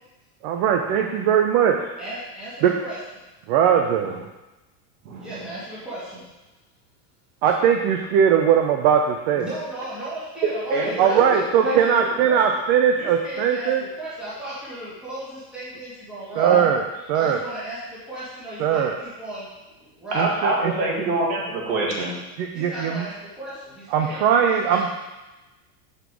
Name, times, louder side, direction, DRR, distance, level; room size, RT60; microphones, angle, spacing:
voice 1, 0.4-1.9 2.6-2.7 3.5-4.2 7.4-9.5 11.0-13.8 16.4-17.4 18.6-18.9 20.2-20.7 22.4-23.0 23.9-25.0, right 8 dB, 45° right, 4 dB, 0.5 m, -20 dB
voice 2, 2.0-3.2 5.1-6.2 9.4-11.9 12.3-12.6 12.9-16.6 17.1-20.3 22.5-25.0, right 1 dB, ahead, -11 dB, 1.8 m, -36 dB
voice 3, 10.7-11.8 16.4-16.6 20.1-22.1, right 2 dB, 65° right, -3 dB, 2.2 m, -25 dB
6.0 x 5.5 x 4.7 m, 1.1 s
supercardioid pair, 160°, 46 cm